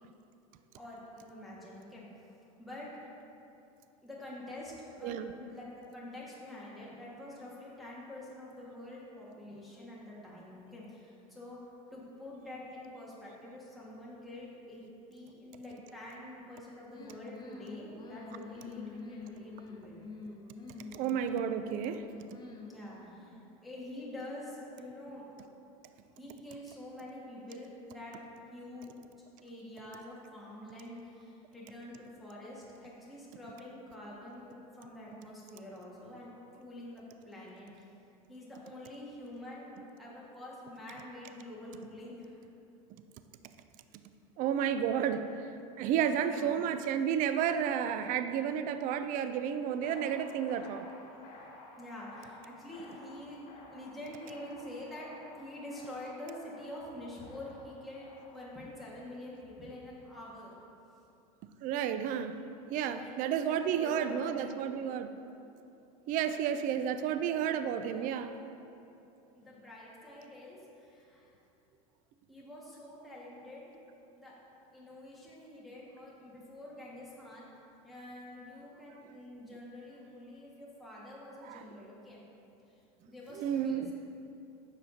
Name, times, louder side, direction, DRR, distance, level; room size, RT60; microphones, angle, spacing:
voice 1, 0.8-2.1 2.6-2.9 4.0-11.6 11.9-14.8 15.1-20.0 22.7-25.2 26.2-28.1 28.5-28.9 29.4-36.3 36.6-37.9 38.3-42.4 46.2-46.6 51.8-53.4 53.7-60.5 62.9-63.1 63.4-64.9 66.1-66.3 67.0-67.1 67.7-68.3 69.3-71.3 72.3-73.7 74.2-74.3 74.7-77.5 77.8-82.2 82.7-82.8 83.0-83.9, left 1 dB, ahead, -7 dB, 1.7 m, -47 dB
sound 1, 16.9-23.3, left 3 dB, 20° left, 0.9 m, -47 dB
voice 2, 20.9-22.1 44.4-45.3 45.8-50.9 61.6-62.4 62.7-65.1 66.1-68.4 81.4-81.6 83.3-83.9, right 8 dB, 45° right, 10 dB, 0.4 m, -31 dB
sound 2, 49.8-58.5, left 2 dB, 55° left, 1.7 m, -54 dB
9.5 x 6.7 x 2.8 m, 2.8 s
supercardioid pair, 110°, 19 cm